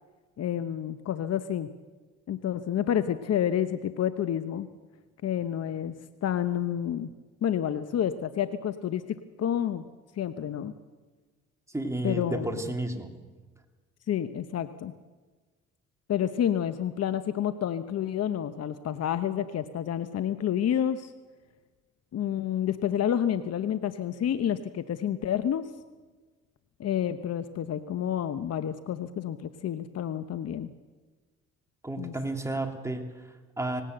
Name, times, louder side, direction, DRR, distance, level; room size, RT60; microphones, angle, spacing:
voice 1, 0.4-1.7 2.3-4.7 5.2-5.9 6.2-7.1 7.4-9.9 10.2-10.7 12.0-12.5 14.1-14.9 16.1-21.1 22.1-25.7 26.8-30.7 32.0-32.1, left 10 dB, 55° left, 11 dB, 0.9 m, -29 dB
voice 2, 11.7-13.1 31.8-33.8, right 2 dB, 10° right, 4 dB, 2.7 m, -32 dB
18.5 x 18.5 x 7.8 m, 1.3 s
cardioid pair, 90°, 30 cm